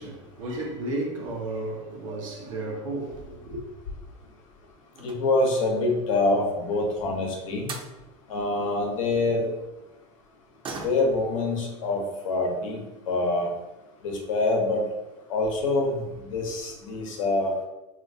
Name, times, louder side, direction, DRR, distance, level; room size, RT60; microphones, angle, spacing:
voice 1, 0.0-3.6, right 2 dB, 90° right, 0.8 m, -33 dB
sound 1, 4.0-4.4 4.9-5.8 7.3-7.4 7.7-8.0 10.6-11.3 11.7-11.8 12.2-12.3 13.1-13.2 13.5-13.6 14.0-14.3 14.6-14.7 15.0-15.1, right 4 dB, 30° right, 0.5 m, -41 dB
voice 2, 5.0-7.7 8.3-9.5 10.8-13.5 14.0-14.9 15.3-17.5, left 2 dB, 85° left, 0.8 m, -25 dB
3.2 x 2.7 x 2.6 m
hypercardioid pair, 95°, 16 cm